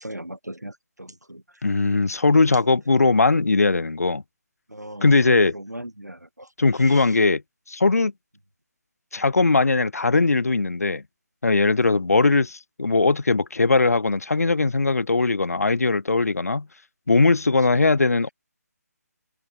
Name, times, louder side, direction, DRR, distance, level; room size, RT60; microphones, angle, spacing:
voice 1, 0.0-1.7 2.5-2.7 4.7-7.2 11.9-12.1 17.5-17.8, right 1 dB, 85° right, 6.7 m, -38 dB
voice 2, 1.6-4.2 5.0-5.5 6.6-7.4 7.7-8.1 9.1-11.0 11.4-16.7 17.1-18.3, left 3 dB, 65° left, 0.9 m, -20 dB
figure-of-eight pair, 145°, 9 cm